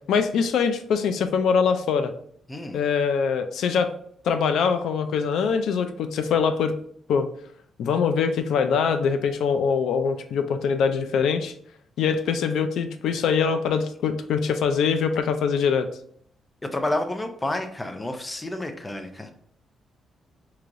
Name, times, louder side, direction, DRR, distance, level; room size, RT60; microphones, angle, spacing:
voice 1, 0.1-2.1 2.7-3.9 4.2-6.7 7.1-7.3 7.8-11.5 12.0-15.9, left 6 dB, 85° left, 9 dB, 0.4 m, -23 dB
voice 2, 16.6-19.3, left 1 dB, 15° left, 6 dB, 0.5 m, -29 dB
4.7 x 2.8 x 2.5 m, 0.66 s
cardioid pair, 115°, 0 cm